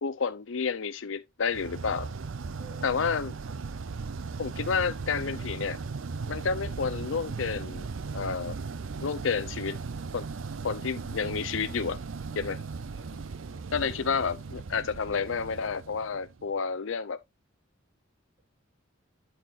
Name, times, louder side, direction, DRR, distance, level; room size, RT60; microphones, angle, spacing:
voice 1, 0.0-2.1 2.8-3.3 4.4-5.8 6.3-7.9 8.1-8.6 9.0-9.8 10.1-10.3 10.6-12.0 12.4-12.6 13.7-17.2, left 5 dB, 70° left, 0.6 m, -30 dB
sound 1, 1.5-16.5, right 4 dB, 75° right, 0.6 m, -37 dB
voice 2, 2.6-3.0 12.4-13.8, right 3 dB, 25° right, 3.6 m, -52 dB
12.5 x 4.4 x 2.5 m
head